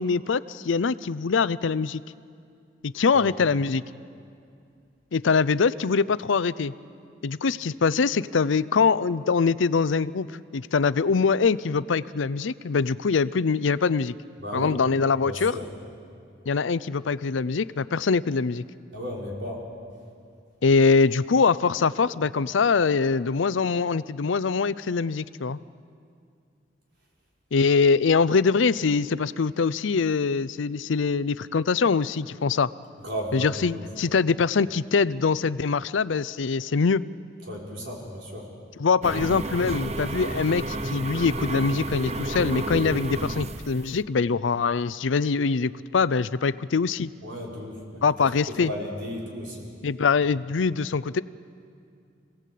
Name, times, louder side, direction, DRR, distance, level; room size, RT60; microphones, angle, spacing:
voice 1, 0.0-2.0 2.8-3.8 5.1-6.7 7.2-10.3 10.5-14.1 14.5-15.6 16.5-18.6 20.6-25.6 27.5-32.7 33.3-37.0 38.8-47.1 48.0-48.7 49.8-51.2, left 5 dB, 85° left, 17 dB, 0.5 m, -23 dB
voice 2, 14.4-14.8 15.2-15.6 18.9-19.7 33.0-33.8 37.5-38.5 47.2-48.3 48.6-49.7, equal, 70° right, -3 dB, 5.1 m, -34 dB
sound 1, 39.0-44.0, right 2 dB, 35° right, 0.7 m, -31 dB
26.5 x 17.5 x 8.4 m, 2.4 s
head